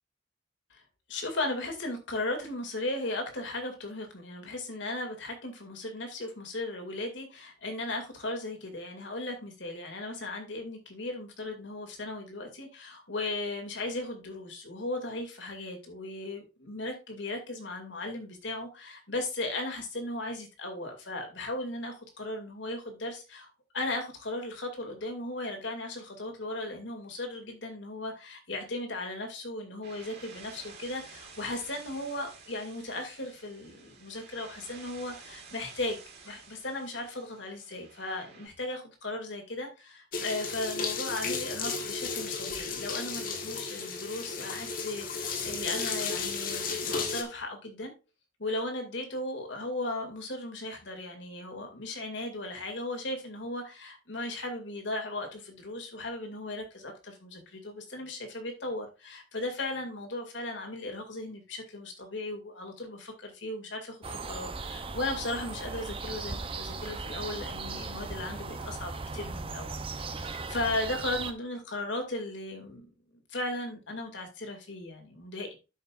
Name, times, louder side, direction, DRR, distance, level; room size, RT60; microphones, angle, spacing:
voice 1, 1.1-23.5 23.7-36.0 36.2-47.9 48.4-72.9 73.1-75.6, left 2 dB, 75° left, 4 dB, 2.5 m, -36 dB
sound 1, 29.8-38.5, right 5 dB, 55° right, 3.7 m, -51 dB
sound 2, 40.1-47.2, left 4 dB, 45° left, 1.4 m, -34 dB
sound 3, 64.0-71.3, right 4 dB, 30° right, 0.6 m, -38 dB
12.5 x 5.5 x 2.5 m, 0.29 s
head